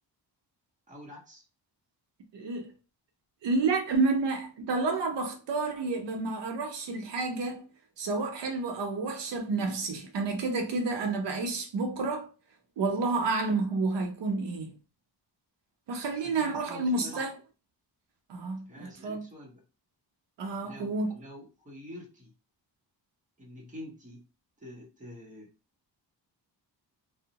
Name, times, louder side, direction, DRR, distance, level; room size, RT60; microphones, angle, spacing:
voice 1, 0.9-1.4 16.2-17.3 18.7-19.6 20.6-22.3 23.4-24.2 24.6-25.5, left 1 dB, 20° right, 0.9 m, -46 dB
voice 2, 2.3-2.7 3.4-7.7 8.0-12.3 12.8-14.8 15.9-17.3 18.3-19.2 20.4-21.1, right 3 dB, 75° right, 0.7 m, -30 dB
2.6 x 2.0 x 2.8 m
wide cardioid pair, 135°, 43 cm